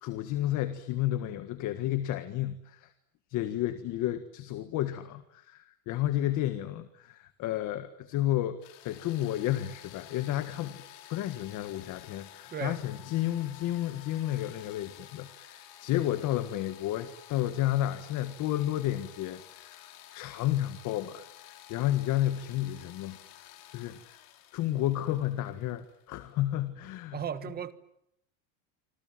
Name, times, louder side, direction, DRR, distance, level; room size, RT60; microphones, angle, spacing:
voice 1, 0.0-2.9 3.3-10.8 11.1-24.2 24.5-27.2, left 13 dB, 40° left, 1.7 m, -32 dB
sound 1, 8.6-26.3, left 13 dB, 60° left, 4.4 m, -52 dB
voice 2, 27.1-27.7, right 8 dB, 20° right, 1.4 m, -35 dB
28.0 x 26.5 x 7.8 m
cardioid pair, 170°, 45 cm